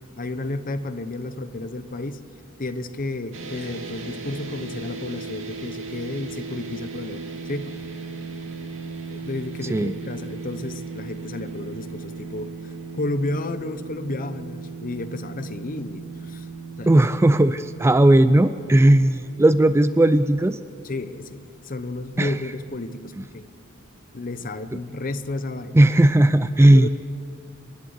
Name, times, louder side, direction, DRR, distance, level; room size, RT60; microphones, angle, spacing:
voice 1, 0.2-2.2 2.6-7.9 9.1-16.5 16.8-17.0 20.8-23.5 24.1-25.8 26.7-26.9, left 2 dB, 45° left, 10 dB, 0.9 m, -32 dB
sound 1, 3.3-19.7, right 4 dB, 70° right, 2.2 m, -37 dB
voice 2, 16.9-20.6 22.2-22.3 25.7-26.9, right 1 dB, 15° right, 12 dB, 0.4 m, -16 dB
28.0 x 11.5 x 8.1 m, 2.4 s
head